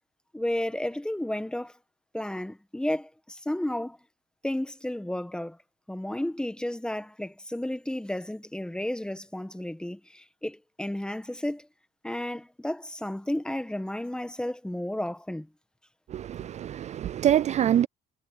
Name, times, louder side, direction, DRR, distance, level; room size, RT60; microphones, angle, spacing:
voice 1, 0.3-1.7 2.1-4.0 4.4-5.6 5.9-11.7 12.0-15.5, left 1 dB, 5° left, 1.6 m, -32 dB
voice 2, 16.1-17.9, right 11 dB, 40° right, 0.4 m, -25 dB
cardioid pair, 110°, 17 cm